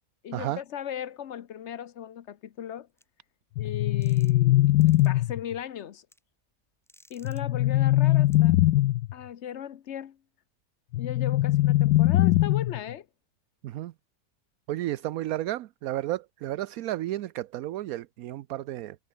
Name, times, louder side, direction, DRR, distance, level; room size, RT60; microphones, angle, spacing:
voice 1, 0.2-2.9 3.6-4.7 5.0-6.1 7.1-8.5 9.1-10.2 11.0-13.1, left 9 dB, 55° left, 0.9 m, -37 dB
sound 1, 3.0-3.1 4.0-4.5 4.8-5.1 6.1-6.2 6.9-7.4 8.3-8.4, equal, ahead, 6.7 m, -57 dB
sound 2, 3.6-5.6 7.2-9.1 10.9-12.9, left 16 dB, 90° left, 1.2 m, -22 dB
voice 2, 14.7-19.0, right 14 dB, 70° right, 1.0 m, -32 dB
omnidirectional pair, 1.7 m